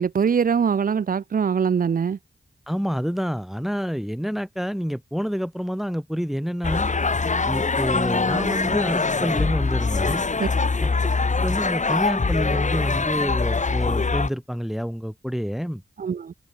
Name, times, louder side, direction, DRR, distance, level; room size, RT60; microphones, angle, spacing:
voice 1, 0.0-2.2 10.4-10.5 16.0-16.3, right 6 dB, 50° right, 0.6 m, -22 dB
voice 2, 2.7-6.9 7.5-10.2 10.8-10.9 11.4-15.8, equal, ahead, 2.2 m, -28 dB
sound 1, 6.6-14.3, left 4 dB, 40° left, 1.8 m, -23 dB
open air
wide cardioid pair, 80°, 19 cm